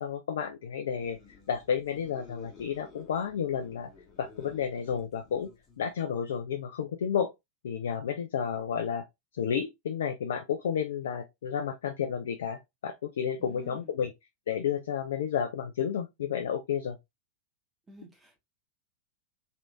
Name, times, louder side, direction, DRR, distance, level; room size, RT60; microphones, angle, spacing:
voice 1, 0.0-1.2 1.5-3.9 4.2-5.5 5.8-7.3 7.6-9.1 9.3-14.1 14.5-17.0, left 8 dB, 60° left, 0.4 m, -31 dB
sound 1, 0.9-6.0, left 6 dB, 25° left, 1.1 m, -53 dB
voice 2, 13.4-13.9 17.9-18.4, right 2 dB, 15° right, 1.1 m, -51 dB
3.2 x 3.0 x 2.4 m
figure-of-eight pair, 90°, 0 cm